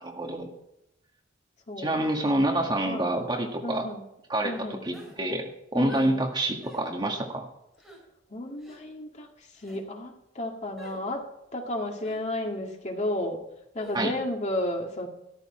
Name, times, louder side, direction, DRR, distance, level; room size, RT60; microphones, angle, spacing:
voice 1, 0.0-0.5 1.8-3.9 4.3-7.5 13.9-14.1, right 1 dB, 25° right, 2 dB, 1.8 m, -27 dB
voice 2, 1.7-2.1 2.4-3.1 3.6-4.0 4.4-4.8 5.7-6.1 8.3-9.3 9.5-11.3 11.5-13.4 13.7-15.1, left 1 dB, 35° left, 2 dB, 2.0 m, -33 dB
sound 1, 4.9-5.2 5.9-6.1 6.6-6.9 7.8-8.0 8.6-8.8 9.5-9.8 10.8-11.0 12.0-12.2 13.8-14.0, right 2 dB, ahead, 4.8 m, -47 dB
14.0 x 13.5 x 4.4 m, 0.83 s
head